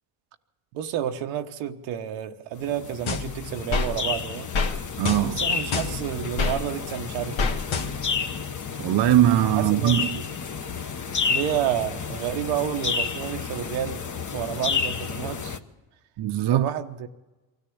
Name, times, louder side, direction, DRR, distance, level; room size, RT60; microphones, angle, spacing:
voice 1, 0.7-4.5 5.3-7.6 9.5-10.1 11.3-14.0 14.3-15.6 16.5-17.1, right 10 dB, 90° right, 1.1 m, -30 dB
sound 1, 2.6-15.6, left 5 dB, 35° left, 1.2 m, -31 dB
sound 2, 3.1-3.9 4.5-4.7 5.0-6.6 7.4-8.2, left 4 dB, 70° left, 1.9 m, -27 dB
voice 2, 5.0-5.4 8.8-10.2 16.2-16.7, right 12 dB, 55° right, 0.7 m, -21 dB
23.5 x 14.0 x 8.5 m
supercardioid pair, 75°, 49 cm